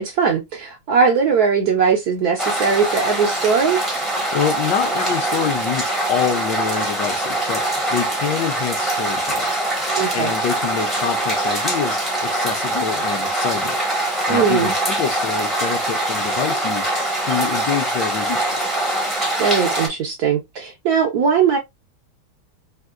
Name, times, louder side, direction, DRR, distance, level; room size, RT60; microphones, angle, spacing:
voice 1, 0.0-3.8 10.0-10.3 14.3-14.7 19.4-21.6, right 6 dB, 65° right, 1.0 m, -19 dB
sound 1, 2.4-19.9, right 1 dB, ahead, 0.5 m, -23 dB
voice 2, 4.3-9.5 10.1-13.7 14.3-16.9 17.2-18.6, left 7 dB, 70° left, 1.2 m, -26 dB
3.6 x 2.5 x 2.4 m
omnidirectional pair, 2.2 m